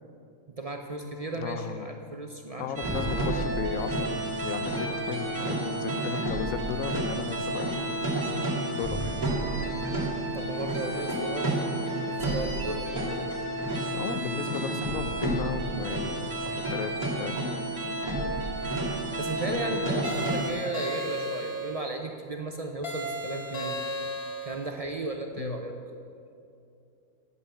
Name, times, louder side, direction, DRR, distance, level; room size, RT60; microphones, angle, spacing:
voice 1, 0.6-2.7 3.2-3.5 8.9-9.2 9.5-9.8 10.3-11.5 12.1-13.0 18.1-18.4 18.9-23.8 24.4-25.7, right 2 dB, 45° right, 3 dB, 0.5 m, -35 dB
sound 1, 0.9-7.0, left 3 dB, 20° left, 0.6 m, -46 dB
voice 2, 1.4-1.9 2.6-4.1 4.4-7.8 8.7-9.2 13.9-17.4 25.4-25.6, left 8 dB, 80° left, 11 dB, 1.0 m, -35 dB
sound 2, 2.8-20.5, right 1 dB, 30° right, 2.1 m, -30 dB
sound 3, 20.0-21.8 22.8-24.6, right 1 dB, 45° left, 1.9 m, -34 dB
9.4 x 8.4 x 7.0 m, 2.6 s
omnidirectional pair, 1.4 m